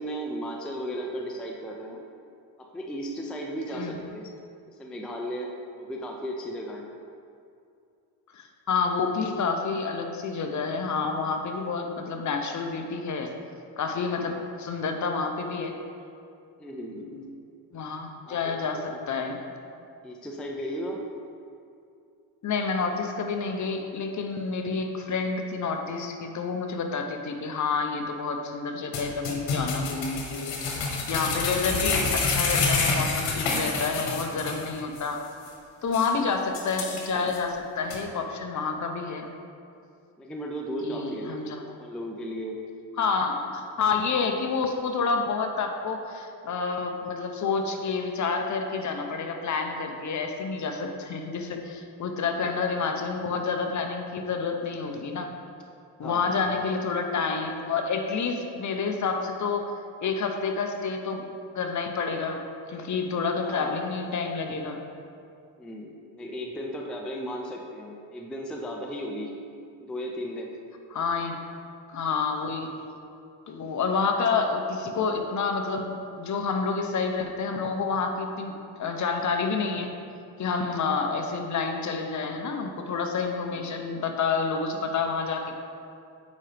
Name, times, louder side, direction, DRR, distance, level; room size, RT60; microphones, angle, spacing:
voice 1, 0.0-2.0 2.6-4.3 4.8-6.9 14.3-14.5 16.6-17.1 18.3-18.6 18.9-19.0 20.0-21.0 33.3-33.8 40.2-41.4 41.8-42.6 52.5-52.6 56.0-56.6 63.4-63.8 65.6-69.3 69.8-70.5 80.7-80.9 83.5-83.8, equal, ahead, 0 dB, 0.4 m, -35 dB
voice 2, 8.3-13.3 13.8-15.7 17.1-17.3 17.7-19.4 22.4-30.8 31.1-35.2 35.8-39.3 40.8-41.6 43.0-55.3 56.0-59.7 60.0-61.2 61.5-62.4 62.7-64.8 70.9-71.4 71.9-72.7 73.5-79.9 80.4-85.5, left 4 dB, 40° left, 4 dB, 0.7 m, -29 dB
sound 1, 28.9-34.7 35.0-35.1 35.5-35.6 35.9-36.1 36.5-37.4 37.9-38.0, left 4 dB, 75° left, 1.3 m, -28 dB
8.3 x 5.0 x 3.4 m, 2.5 s
cardioid pair, 110°, 47 cm